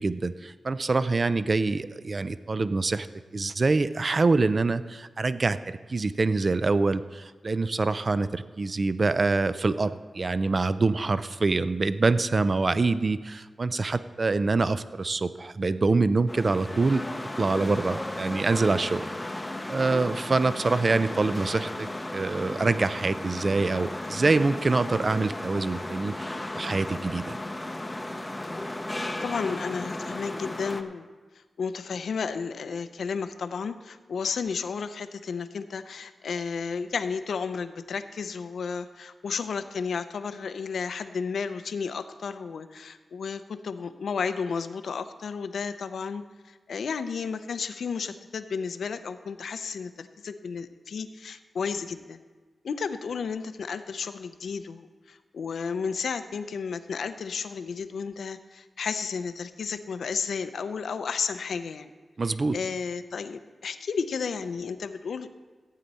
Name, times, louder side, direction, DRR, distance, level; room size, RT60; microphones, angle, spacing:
voice 1, 0.0-3.1 3.3-17.0 17.4-19.1 19.3-19.4 19.7-27.4 62.2-62.6, right 3 dB, 35° right, 14 dB, 0.4 m, -25 dB
sound 1, 16.3-30.8, left 1 dB, 15° left, 0.7 m, -35 dB
voice 2, 29.2-31.1 31.3-52.2 52.6-61.9 62.3-65.3, left 5 dB, 80° left, 11 dB, 0.6 m, -33 dB
15.0 x 9.1 x 4.1 m, 1.4 s
wide cardioid pair, 135°, 0 cm